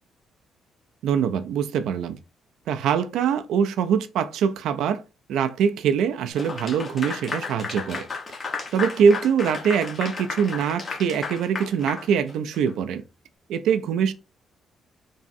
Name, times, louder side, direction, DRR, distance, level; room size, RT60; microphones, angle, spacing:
voice 1, 1.0-2.2 2.7-5.0 5.3-8.1 8.7-13.0 13.5-14.1, right 7 dB, 85° right, 0.3 m, -23 dB
Clapping / Applause, 6.4-12.7, left 4 dB, 35° left, 0.9 m, -33 dB
3.5 x 2.0 x 2.5 m
cardioid pair, 90°, 0 cm